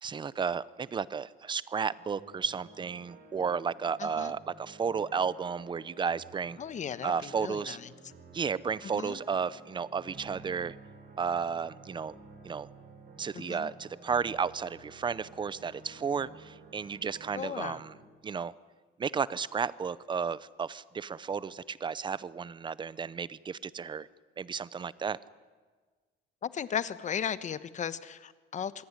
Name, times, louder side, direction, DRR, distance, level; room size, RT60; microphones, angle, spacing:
voice 1, 0.0-6.6 7.0-7.8 8.3-10.7 11.2-12.1 12.4-12.7 13.2-17.9 18.2-18.5 19.0-24.1 24.4-25.2, right 6 dB, 25° right, 19 dB, 0.7 m, -33 dB
sound 1, 2.1-18.1, right 3 dB, 50° right, 5.0 m, -52 dB
voice 2, 4.0-4.3 6.6-7.9 8.8-9.2 13.3-13.7 17.3-17.8 26.4-28.8, left 8 dB, 40° left, 15 dB, 1.2 m, -36 dB
26.0 x 21.5 x 9.7 m, 1.4 s
cardioid pair, 145°, 20 cm